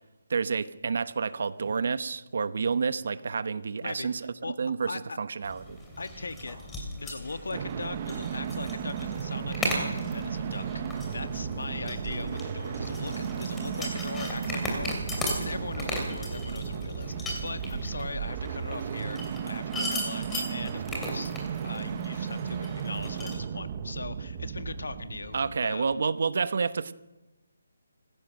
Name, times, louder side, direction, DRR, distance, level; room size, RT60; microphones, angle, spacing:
voice 1, 0.3-5.8 25.3-26.9, right 5 dB, 50° right, 14 dB, 1.0 m, -29 dB
voice 2, 4.9-5.2 6.0-6.6 7.0-15.0 15.4-21.3 21.6-25.9, left 3 dB, 85° left, 10 dB, 1.7 m, -39 dB
sound 1, 5.4-23.3, left 1 dB, 5° left, 2.9 m, -37 dB
sound 2, 7.5-26.0, right 8 dB, 25° right, 0.9 m, -35 dB
sound 3, 8.1-17.9, left 3 dB, 55° left, 4.1 m, -46 dB
27.5 x 16.0 x 6.5 m, 1.1 s
hypercardioid pair, 175°, 0 cm